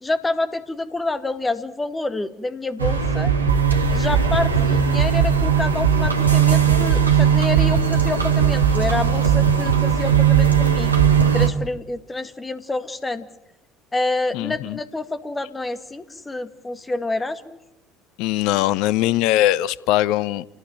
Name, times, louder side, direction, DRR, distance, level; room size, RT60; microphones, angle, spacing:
voice 1, 0.0-3.3 3.9-10.9 11.3-13.3 13.9-17.6, left 2 dB, 15° left, 2.1 m, -27 dB
sound 1, 2.8-11.5, right 7 dB, 85° right, 1.6 m, -18 dB
voice 2, 14.3-14.8 18.2-20.4, left 15 dB, 60° left, 0.8 m, -21 dB
28.5 x 18.0 x 7.7 m
figure-of-eight pair, 60°, 0 cm